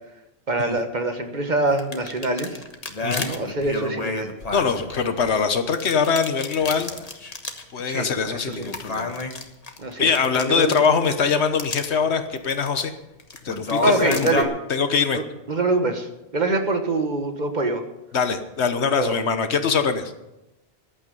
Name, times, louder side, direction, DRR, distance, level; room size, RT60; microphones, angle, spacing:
voice 1, 0.5-2.6 3.3-4.3 7.9-8.7 9.8-10.8 13.8-14.5 15.1-15.2 15.5-17.8 18.9-19.2, right 2 dB, 45° right, 6 dB, 1.6 m, -24 dB
sound 1, 1.7-5.3 5.7-7.7 8.0-8.1 8.5-11.2 11.6-11.9 12.4-12.8 13.2-14.4, left 2 dB, 35° left, 1.3 m, -30 dB
voice 2, 4.5-6.9 7.7-9.1 10.0-12.9 13.4-14.1 14.7-15.2 18.1-20.1, left 5 dB, 90° left, 8 dB, 1.3 m, -22 dB
14.5 x 11.5 x 5.4 m, 0.95 s
omnidirectional pair, 1.1 m